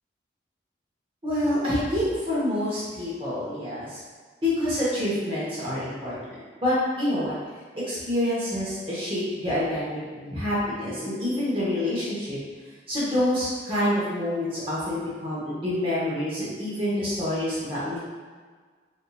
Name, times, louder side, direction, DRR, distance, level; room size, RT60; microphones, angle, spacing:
voice 1, 1.2-4.0 4.4-7.3 7.9-12.4 12.9-18.0, left 1 dB, 30° right, -8 dB, 1.0 m, -27 dB
4.1 x 2.7 x 2.3 m, 1.5 s
head